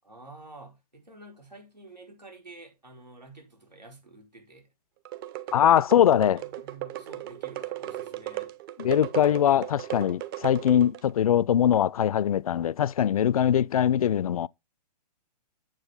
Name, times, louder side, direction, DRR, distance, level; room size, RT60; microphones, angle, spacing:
voice 1, 0.0-4.7 5.5-5.7 6.3-8.5, right 2 dB, 85° right, 4.8 m, -49 dB
sound 1, 5.1-11.1, right 15 dB, 35° right, 0.9 m, -36 dB
voice 2, 5.5-6.4 8.8-14.5, left 10 dB, 60° left, 0.4 m, -22 dB
9.0 x 7.5 x 3.8 m
figure-of-eight pair, 120°, 21 cm